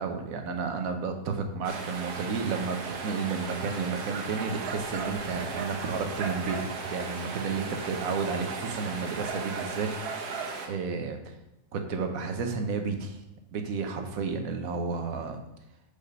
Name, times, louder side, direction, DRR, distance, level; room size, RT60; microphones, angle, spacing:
voice 1, 0.0-10.2 10.6-11.3 11.7-13.2 13.5-15.4, right 5 dB, 65° right, 5 dB, 1.3 m, -32 dB
sound 1, 1.6-10.7, right 4 dB, 85° right, 1.5 m, -36 dB
sound 2, 3.5-3.7 4.2-4.4 4.9-5.1 5.7-5.8 6.4-6.5 7.0-7.2 7.7-7.9 8.4-8.6 9.1-9.2, left 3 dB, 40° left, 1.1 m, -52 dB
6.7 x 5.1 x 5.3 m, 0.90 s
omnidirectional pair, 1.6 m